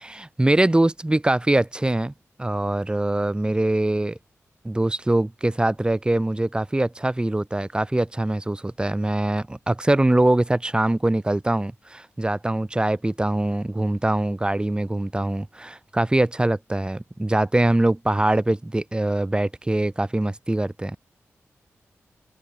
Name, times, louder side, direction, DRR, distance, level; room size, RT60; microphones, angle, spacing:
voice 1, 0.0-2.1 2.4-4.2 4.6-21.0, right 1 dB, 15° right, 1.5 m, -23 dB
cardioid pair, 65°, 5 cm